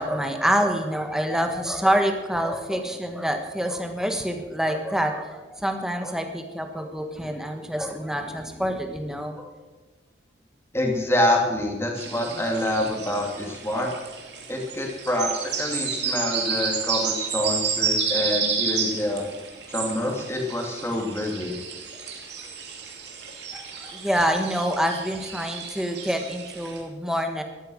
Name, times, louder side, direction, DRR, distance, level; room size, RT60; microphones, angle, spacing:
voice 1, 0.0-9.5 23.5-27.4, equal, 5° right, 5 dB, 1.4 m, -26 dB
voice 2, 10.7-13.9 14.5-19.3 19.7-21.5, left 1 dB, 15° left, 0 dB, 2.5 m, -26 dB
sound 1, 12.0-26.8, right 6 dB, 60° right, 2.7 m, -31 dB
13.5 x 12.5 x 6.3 m, 1.2 s
head